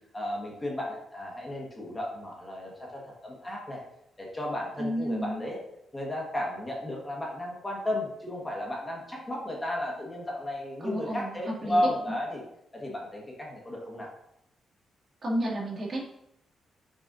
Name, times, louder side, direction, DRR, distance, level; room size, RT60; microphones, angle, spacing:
voice 1, 0.1-3.8 4.2-5.6 5.9-12.4 12.7-14.1, left 1 dB, 20° left, -2 dB, 1.5 m, -33 dB
voice 2, 4.8-5.4 10.8-11.4 11.6-11.8 15.2-16.0, equal, 40° right, -5 dB, 2.2 m, -31 dB
6.4 x 5.5 x 2.7 m, 0.80 s
cardioid pair, 100°, 0 cm